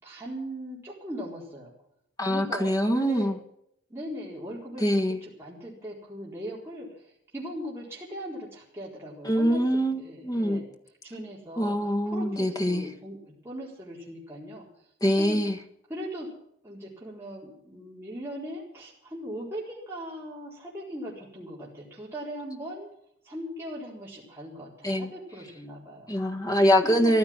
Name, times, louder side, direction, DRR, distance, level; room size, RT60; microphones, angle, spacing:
voice 1, 0.0-1.7 2.2-3.3 3.9-9.6 10.0-10.7 11.0-11.8 12.1-14.9 15.2-15.4 15.9-16.3 16.6-22.9 23.2-26.1 26.8-27.2, equal, 10° right, -5 dB, 4.1 m, -39 dB
voice 2, 2.2-3.4 4.8-5.2 9.2-10.6 11.6-12.8 15.0-15.6 24.8-25.1 26.1-27.2, equal, 20° left, 5 dB, 1.6 m, -24 dB
15.0 x 12.0 x 7.4 m, 0.72 s
head